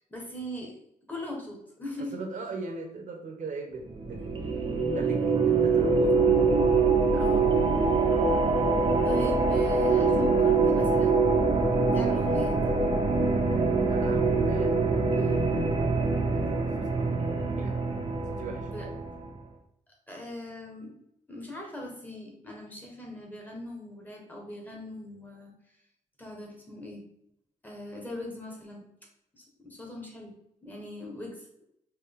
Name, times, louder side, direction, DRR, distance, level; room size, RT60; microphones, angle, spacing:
voice 1, 0.1-0.8 1.1-2.1 7.1-7.9 9.0-11.3 11.9-12.8 15.1-15.4 18.7-18.9 20.1-20.9 21.3-25.5 26.2-27.0 27.6-28.8 29.3-30.3 30.6-31.5, left 1 dB, 10° left, -1 dB, 1.2 m, -41 dB
voice 2, 2.1-4.2 4.9-6.7 13.9-14.8 16.3-17.8 18.3-18.7, right 4 dB, 65° right, 3 dB, 0.9 m, -39 dB
sound 1, 3.9-19.3, right 4 dB, 40° right, 0.7 m, -24 dB
4.7 x 2.9 x 3.4 m, 0.79 s
wide cardioid pair, 155°, 14 cm